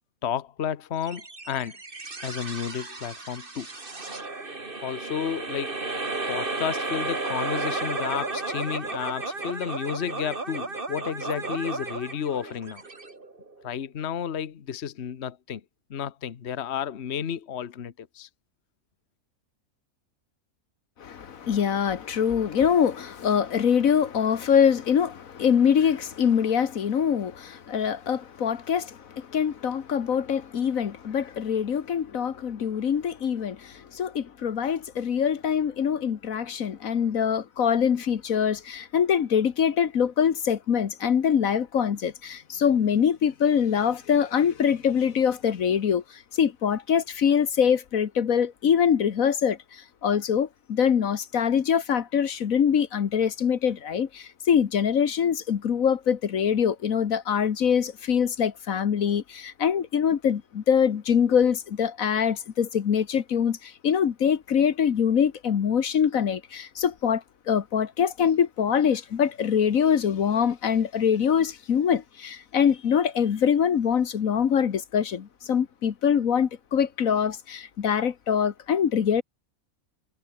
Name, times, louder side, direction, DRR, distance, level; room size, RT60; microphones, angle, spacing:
voice 1, 0.2-1.8 2.2-3.7 4.8-5.8 6.3-12.8 13.6-15.6 15.9-18.3, left 8 dB, 50° left, 1.3 m, -32 dB
sound 1, 1.0-13.7, right 3 dB, 40° right, 2.8 m, -33 dB
voice 2, 21.0-79.2, left 7 dB, 70° left, 1.6 m, -24 dB
omnidirectional pair, 1.5 m